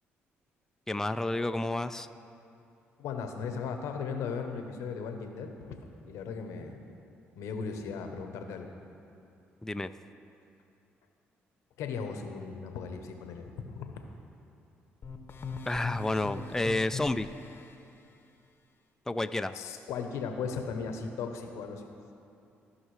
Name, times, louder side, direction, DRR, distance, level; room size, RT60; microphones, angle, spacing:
voice 1, 0.9-2.1 9.6-9.9 15.7-17.3 19.1-19.6, left 2 dB, 10° left, 10 dB, 0.4 m, -30 dB
voice 2, 3.0-5.7 6.1-6.8 7.4-8.7 11.8-13.9 19.5-21.9, left 5 dB, 80° left, 5 dB, 0.8 m, -37 dB
sound 1, 15.0-17.8, left 5 dB, 45° left, 0.8 m, -41 dB
15.5 x 5.6 x 3.2 m, 2.7 s
supercardioid pair, 60°, 5 cm